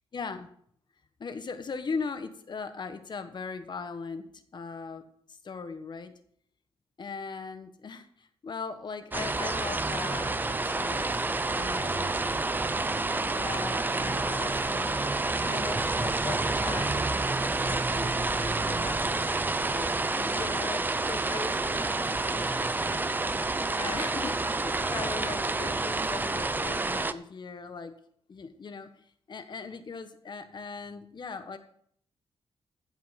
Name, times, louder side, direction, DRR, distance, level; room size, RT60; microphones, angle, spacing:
voice 1, 0.1-0.5 1.2-5.0 5.4-6.1 7.0-11.1 11.5-12.3 13.3-15.1 15.4-19.2 19.5-22.7 23.7-27.9 28.3-28.9 29.3-31.6, left 5 dB, 45° left, 9 dB, 1.3 m, -39 dB
sound 1, 9.1-27.1, right 3 dB, 20° right, 0.6 m, -29 dB
15.5 x 5.7 x 5.8 m, 0.64 s
wide cardioid pair, 115°, 10 cm